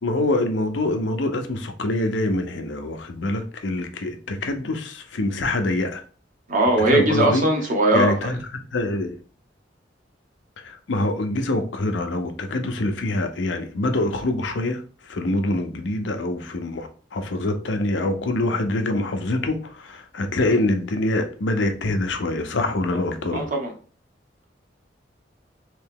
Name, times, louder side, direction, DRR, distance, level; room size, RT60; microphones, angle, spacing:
voice 1, 0.0-6.0 6.8-7.4 7.9-8.4 8.7-9.2 10.6-14.8 15.1-23.5, left 2 dB, 90° left, 0.6 m, -25 dB
voice 2, 6.5-8.3 23.3-23.7, right 1 dB, 45° right, 1.0 m, -20 dB
3.2 x 2.8 x 3.6 m
head